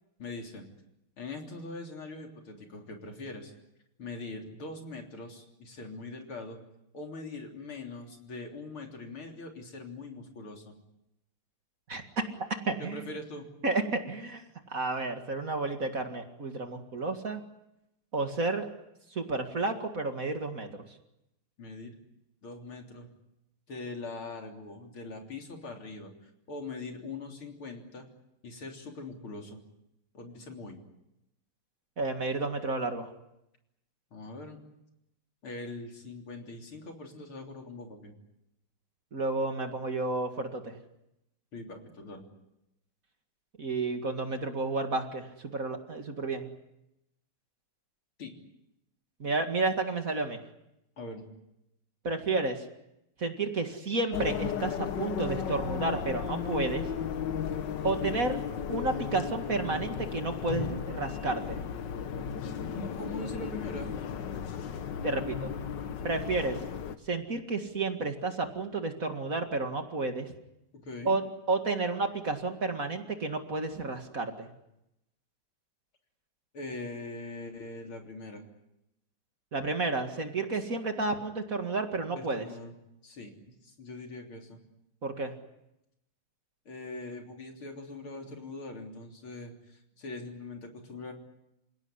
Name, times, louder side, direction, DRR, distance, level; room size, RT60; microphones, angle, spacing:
voice 1, 0.2-0.7 1.2-3.5 4.0-6.6 6.9-10.7 12.8-13.5 21.6-22.0 22.4-23.1 23.7-28.1 28.4-29.6 30.1-30.8 34.1-34.6 35.4-38.1 41.5-42.2 48.2-48.3 51.0-51.3 62.7-64.0 70.7-71.2 76.5-78.4 82.1-82.7 83.0-84.6 86.7-91.1, left 2 dB, 75° left, 2 dB, 4.3 m, -42 dB
voice 2, 12.4-13.1 13.6-17.4 18.1-18.7 19.1-20.7 32.0-33.1 39.1-40.8 43.6-46.5 49.2-50.4 52.0-52.7 53.2-56.9 57.8-58.4 58.7-61.6 65.0-65.5 66.0-66.6 67.1-70.3 71.0-71.2 71.5-74.5 79.5-82.5 85.0-85.3, right 3 dB, 40° right, 5 dB, 2.3 m, -31 dB
sound 1, 54.1-67.0, left 7 dB, 60° left, 1.7 m, -35 dB
28.5 x 17.0 x 9.8 m, 0.86 s
omnidirectional pair, 2.3 m